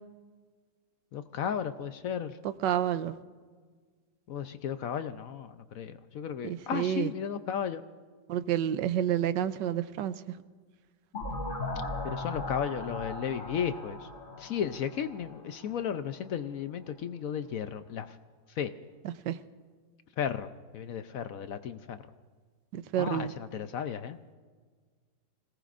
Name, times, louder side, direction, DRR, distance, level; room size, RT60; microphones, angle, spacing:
voice 1, 1.1-2.4 4.3-7.8 12.0-14.0 14.4-18.1 18.6-18.7 20.2-22.0 23.0-24.2, left 8 dB, 70° left, 10 dB, 0.8 m, -34 dB
voice 2, 2.6-3.1 6.4-7.1 8.3-10.1 19.3-19.4 22.7-23.3, right 10 dB, 75° right, 13 dB, 1.3 m, -29 dB
sound 1, 11.1-15.8, left 2 dB, 90° left, 3.8 m, -38 dB
26.0 x 18.0 x 2.5 m, 1.5 s
omnidirectional pair, 2.0 m